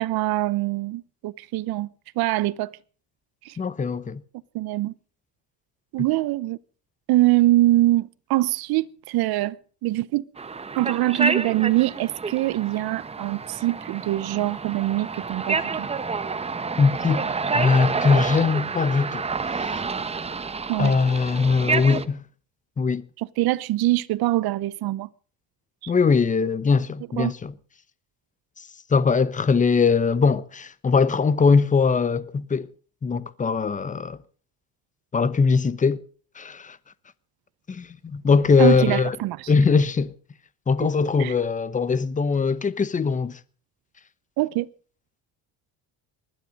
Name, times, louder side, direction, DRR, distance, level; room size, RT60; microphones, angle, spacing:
voice 1, 0.0-1.9 2.2-2.7 3.4-3.6 4.5-4.9 5.9-6.6 7.1-9.6 9.8-10.2 10.7-15.9 20.7-21.0 23.2-25.1 25.8-25.9 27.2-27.3 38.6-39.5 40.8-40.9 41.2-41.3 44.4-44.7, right 17 dB, 85° right, 0.8 m, -23 dB
voice 2, 3.6-4.2 16.8-17.3 17.5-19.3 19.7-19.8 20.8-22.2 22.8-23.0 25.9-27.5 28.6-32.7 33.0-34.2 35.1-36.0 36.3-36.8 37.7-39.2 39.5-40.1 40.7-43.4, left 5 dB, 20° left, 0.9 m, -21 dB
sound 1, 10.4-22.0, right 4 dB, 15° right, 0.9 m, -29 dB
20.0 x 12.5 x 5.2 m
cardioid pair, 155°, 36 cm